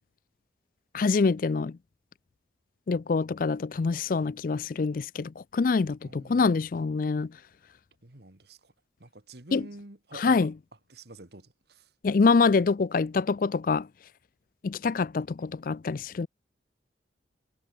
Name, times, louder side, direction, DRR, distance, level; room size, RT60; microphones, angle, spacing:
voice 1, 0.9-1.8 2.9-7.3 9.5-9.6 10.1-10.5 12.0-13.9 14.6-16.3, left 4 dB, 45° left, 0.4 m, -25 dB
voice 2, 6.0-6.6 8.0-8.7 9.0-10.5 10.9-11.9, right 2 dB, 55° right, 2.1 m, -47 dB
head